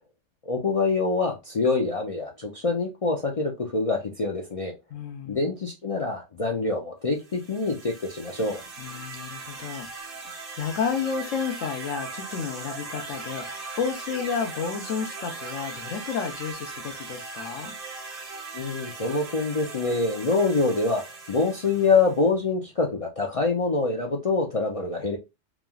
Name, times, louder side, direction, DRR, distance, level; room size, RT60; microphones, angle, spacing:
voice 1, 0.5-4.7 5.3-8.6 18.5-21.0 21.3-25.2, left 3 dB, 55° left, 0.4 m, -25 dB
voice 2, 4.9-5.5 8.8-9.9 10.2-17.7, left 6 dB, 85° left, 1.1 m, -31 dB
sound 1, 7.2-22.3, right 3 dB, 50° right, 0.9 m, -39 dB
3.1 x 2.4 x 2.2 m
omnidirectional pair, 1.3 m